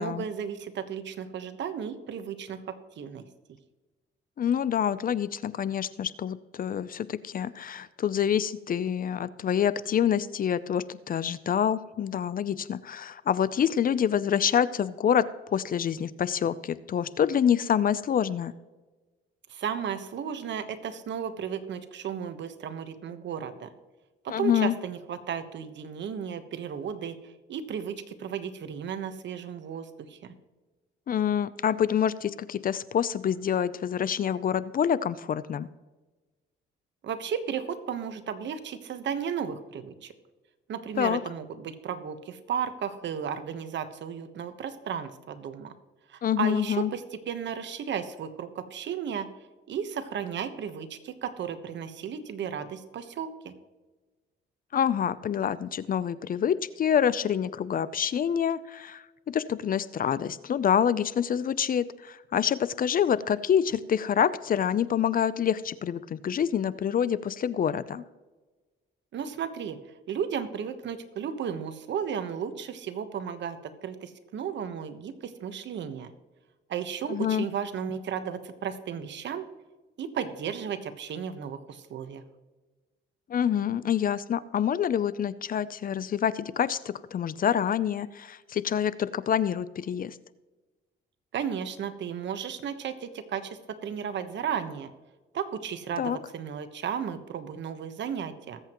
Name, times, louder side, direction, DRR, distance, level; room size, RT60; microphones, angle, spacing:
voice 1, 0.0-3.2 19.5-23.7 24.2-30.3 37.0-40.1 40.7-45.7 46.1-49.3 49.7-53.5 69.1-69.8 70.1-76.1 76.7-79.4 80.0-82.2 91.3-94.9 95.3-98.6, right 7 dB, 65° right, 10 dB, 1.2 m, -34 dB
voice 2, 4.4-15.3 15.5-18.5 24.3-24.7 31.1-35.7 41.0-41.2 46.2-46.9 54.7-68.0 77.1-77.5 83.3-90.2 96.0-96.2, left 8 dB, 45° left, 17 dB, 0.5 m, -27 dB
21.0 x 8.1 x 3.0 m, 1.2 s
cardioid pair, 90°, 20 cm